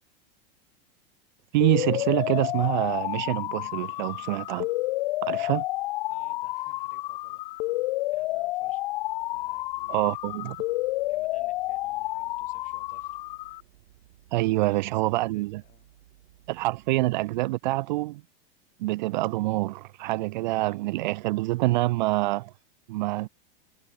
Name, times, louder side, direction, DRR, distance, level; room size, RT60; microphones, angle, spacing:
voice 1, 1.5-4.7 5.2-5.6 9.9-10.6 14.3-15.6 16.5-18.2 18.8-22.5 22.9-23.3, right 19 dB, 50° right, 0.5 m, -26 dB
sound 1, 1.6-13.6, left 19 dB, 55° left, 0.8 m, -30 dB
voice 2, 6.1-7.7 8.1-8.8 9.3-10.1 11.1-13.2 13.5-13.6 14.4-15.9, left 14 dB, 25° left, 6.2 m, -59 dB
sound 2, 8.9-17.4, right 14 dB, 75° right, 5.2 m, -58 dB
supercardioid pair, 170°, 30 cm